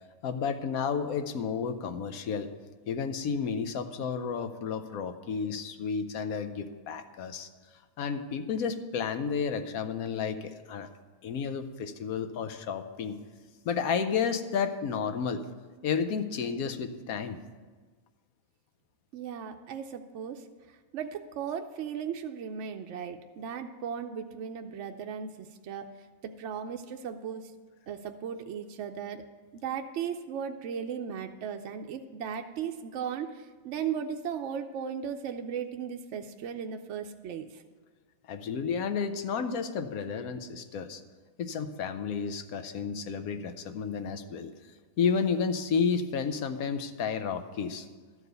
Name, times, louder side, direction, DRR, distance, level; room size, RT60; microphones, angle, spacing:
voice 1, 0.2-2.5 2.9-7.5 8.0-10.9 11.2-13.2 13.6-15.4 15.8-17.4 38.3-41.0 41.4-44.5 45.0-47.9, left 6 dB, 80° left, 9 dB, 1.2 m, -31 dB
voice 2, 19.1-20.4 20.9-25.9 26.4-27.5 27.9-29.2 29.6-37.6, right 7 dB, 65° right, 5 dB, 0.8 m, -36 dB
12.5 x 4.8 x 8.0 m, 1.4 s
omnidirectional pair, 1.5 m